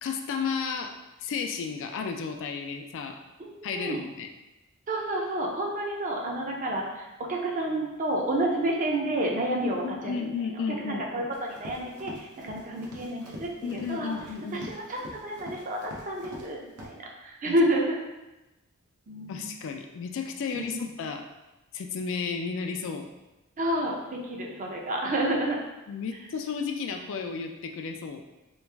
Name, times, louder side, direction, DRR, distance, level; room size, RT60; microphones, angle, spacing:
voice 1, 0.0-3.2 3.6-4.3 9.6-11.3 13.6-14.6 17.5-17.6 19.3-21.2 21.7-23.1 25.9-28.2, left 5 dB, 60° left, 5 dB, 0.3 m, -33 dB
voice 2, 3.4-4.0 4.9-10.3 10.8-14.1 14.5-18.0 19.1-19.4 20.5-20.9 23.6-25.6, right 1 dB, 35° right, -1 dB, 0.5 m, -30 dB
Run, 11.3-16.5 16.8-16.9, equal, 85° right, 0.7 m, -44 dB
3.1 x 2.4 x 3.3 m, 1.0 s
head